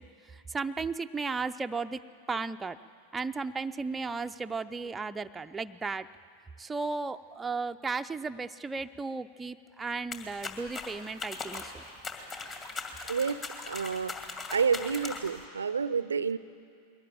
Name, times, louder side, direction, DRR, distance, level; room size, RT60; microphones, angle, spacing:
voice 1, 0.0-2.0 2.3-2.8 3.1-6.1 6.6-11.8, right 4 dB, 10° right, 8 dB, 0.5 m, -35 dB
sound 1, 10.1-15.4, left 3 dB, 25° left, 2.3 m, -40 dB
voice 2, 13.1-13.4 13.7-14.1 14.5-16.4, right 6 dB, 75° right, 17 dB, 0.5 m, -29 dB
22.0 x 18.5 x 9.0 m, 2.4 s
figure-of-eight pair, 90°, 0 cm